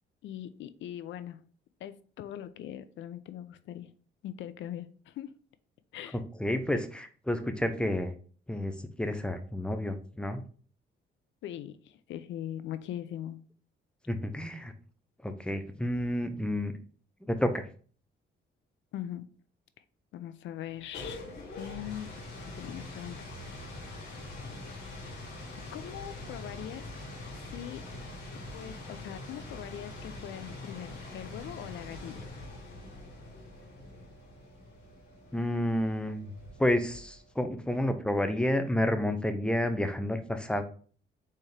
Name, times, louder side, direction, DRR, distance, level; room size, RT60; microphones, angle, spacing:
voice 1, 0.2-1.4 1.8-3.9 4.2-5.3 5.9-6.2 11.4-13.4 18.9-19.3 20.1-21.3 21.5-22.1 22.6-23.2 25.7-26.8 27.3-27.8 28.5-32.2, left 11 dB, 70° left, 0.5 m, -41 dB
voice 2, 6.4-8.1 8.5-10.4 14.1-14.7 15.2-16.7 17.3-17.6 35.3-36.3 36.6-40.6, left 1 dB, 5° left, 0.6 m, -30 dB
sound 1, 20.6-37.4, left 2 dB, 55° left, 1.9 m, -44 dB
4.2 x 3.5 x 3.3 m
cardioid pair, 90°, 20 cm